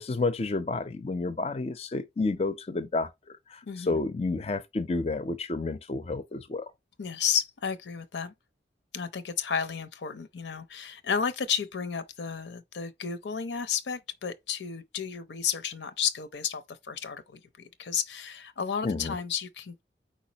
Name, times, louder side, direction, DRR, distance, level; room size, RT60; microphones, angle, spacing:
voice 1, 0.0-6.7 18.8-19.1, left 3 dB, 35° left, 0.4 m, -30 dB
voice 2, 3.6-4.0 7.0-8.3 8.9-19.8, left 7 dB, 80° left, 0.6 m, -32 dB
4.5 x 4.2 x 2.8 m
head